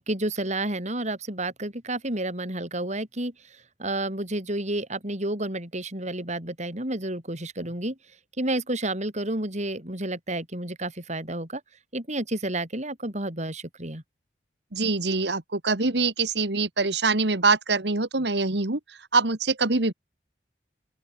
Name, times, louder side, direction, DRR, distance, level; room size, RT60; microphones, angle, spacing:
voice 1, 0.0-3.3 3.8-8.0 8.4-11.6 11.9-14.0, right 1 dB, 40° right, 7.1 m, -30 dB
voice 2, 14.7-18.8 19.1-19.9, right 3 dB, 70° right, 2.0 m, -24 dB
open air
head